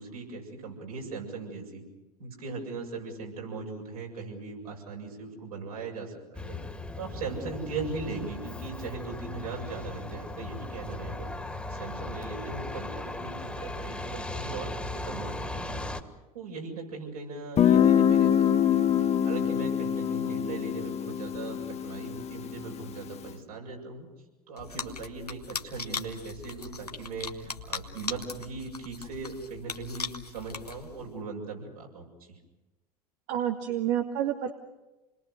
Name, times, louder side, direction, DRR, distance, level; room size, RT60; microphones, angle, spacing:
voice 1, 0.0-1.8 2.2-6.6 7.0-11.3 11.7-15.9 16.3-18.9 19.2-24.1 24.5-32.4, right 4 dB, 75° right, 0 dB, 7.4 m, -39 dB
Truck, 6.3-16.0, left 2 dB, 5° left, 2.4 m, -37 dB
Guitar, 17.6-23.1, left 9 dB, 35° left, 1.4 m, -24 dB
sound 1, 24.6-31.2, left 4 dB, 90° left, 1.3 m, -39 dB
voice 2, 33.3-34.5, right 10 dB, 55° right, 6 dB, 1.5 m, -29 dB
29.0 x 21.0 x 6.5 m, 1.1 s
figure-of-eight pair, 75°, 19 cm